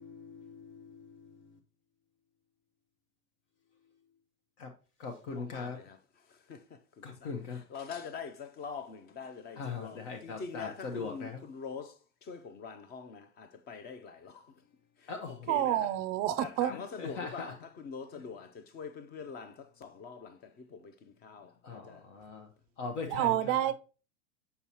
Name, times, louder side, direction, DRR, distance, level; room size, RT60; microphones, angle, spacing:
voice 1, 0.0-1.6 4.6-4.7 5.0-5.8 7.0-7.6 9.6-11.4 15.1-15.5 16.7-17.5 18.1-18.2 21.6-22.5 22.8-23.6, left 4 dB, 60° left, 1.0 m, -41 dB
voice 2, 5.3-6.0 6.3-7.3 7.6-15.9 16.4-22.0 23.3-23.4, left 5 dB, 25° left, 0.5 m, -45 dB
voice 3, 15.5-16.7 23.1-23.7, right 12 dB, 35° right, 0.4 m, -28 dB
6.8 x 5.6 x 2.9 m
hypercardioid pair, 120°, 42 cm